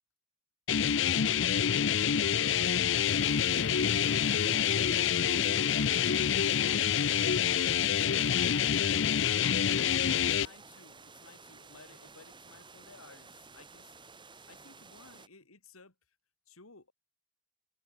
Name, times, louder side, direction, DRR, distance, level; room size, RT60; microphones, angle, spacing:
sound 1, 0.7-10.5, left 8 dB, 60° left, 0.5 m, -27 dB
voice 1, 1.4-4.2 14.3-14.5, right 3 dB, 80° right, 5.2 m, -62 dB
sound 2, 2.9-15.3, right 4 dB, 20° right, 6.6 m, -53 dB
sound 3, 3.1-7.6, equal, 5° right, 1.4 m, -49 dB
voice 2, 5.4-6.1 10.2-15.9 16.5-16.9, left 4 dB, 85° left, 3.4 m, -57 dB
head